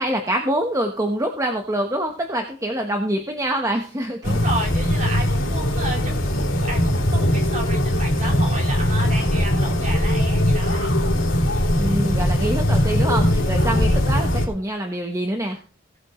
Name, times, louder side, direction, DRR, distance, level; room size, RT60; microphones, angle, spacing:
voice 1, 0.0-4.4 11.8-15.6, right 1 dB, 15° right, 3 dB, 1.1 m, -25 dB
sound 1, 4.2-14.5, equal, 80° left, 3.2 m, -20 dB
voice 2, 4.2-10.9, right 2 dB, 40° right, 0 dB, 3.5 m, -32 dB
18.0 x 8.4 x 3.1 m, 0.39 s
head